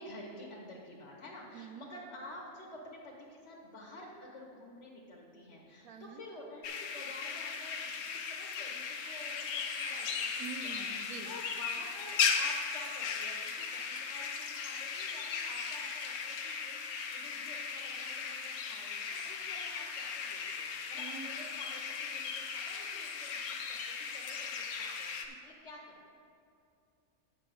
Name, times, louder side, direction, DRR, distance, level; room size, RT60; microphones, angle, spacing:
voice 1, 0.0-23.8 24.1-26.1, left 1 dB, 55° left, -2 dB, 1.5 m, -50 dB
voice 2, 1.5-1.9 5.8-6.2 10.4-11.3 21.0-21.3 25.3-25.4, right 6 dB, 80° right, 6 dB, 1.1 m, -45 dB
sound 1, 6.6-25.3, left 6 dB, 90° left, 1.2 m, -37 dB
8.8 x 6.9 x 5.2 m, 2.6 s
omnidirectional pair, 1.5 m